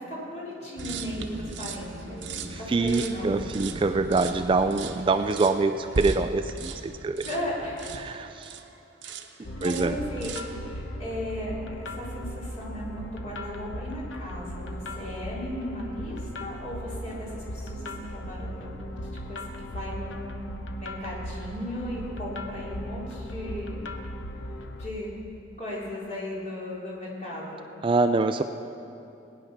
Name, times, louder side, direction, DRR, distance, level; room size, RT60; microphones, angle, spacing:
voice 1, 0.0-3.5 7.2-8.0 9.0-9.1 9.6-10.3 10.6-19.0 19.3-23.8 24.8-25.1 25.6-27.7, left 1 dB, 40° left, -6 dB, 3.6 m, -36 dB
sound 1, 0.8-8.7 9.0-9.3 9.6-10.6, right 3 dB, 70° right, 0.9 m, -37 dB
voice 2, 2.5-7.3 8.0-8.5 9.6-10.0 27.8-28.4, right 3 dB, 25° right, 9 dB, 0.3 m, -25 dB
sound 2, 9.4-24.9, equal, 85° left, 0.9 m, -37 dB
20.0 x 9.5 x 5.9 m, 2.9 s
head